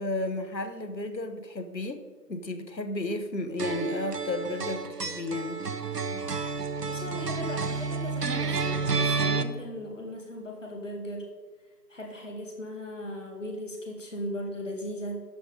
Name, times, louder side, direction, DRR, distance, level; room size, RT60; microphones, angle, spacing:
voice 1, 0.0-2.0 2.3-5.6, left 2 dB, 90° left, 9 dB, 1.2 m, -33 dB
sound 1, 3.6-9.4, right 4 dB, 70° right, 0.9 m, -30 dB
voice 2, 6.8-11.3 11.9-15.2, equal, 50° left, 1 dB, 2.2 m, -37 dB
12.0 x 6.4 x 5.1 m, 1.4 s
figure-of-eight pair, 165°, 50 cm